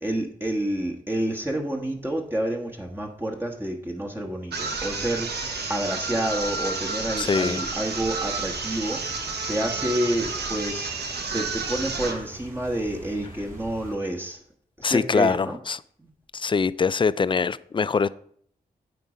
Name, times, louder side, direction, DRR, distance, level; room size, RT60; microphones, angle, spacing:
voice 1, 0.0-9.0 9.5-10.9 11.3-14.4 14.8-15.6 16.0-16.1, right 1 dB, 15° right, 1.3 m, -29 dB
sound 1, 4.5-12.3, right 4 dB, 75° right, 1.1 m, -31 dB
voice 2, 7.2-7.6 14.8-15.8 16.3-18.1, left 5 dB, 30° left, 0.4 m, -23 dB
sound 2, 7.8-14.0, right 1 dB, 55° right, 3.6 m, -45 dB
9.2 x 3.9 x 5.0 m
cardioid pair, 45°, 17 cm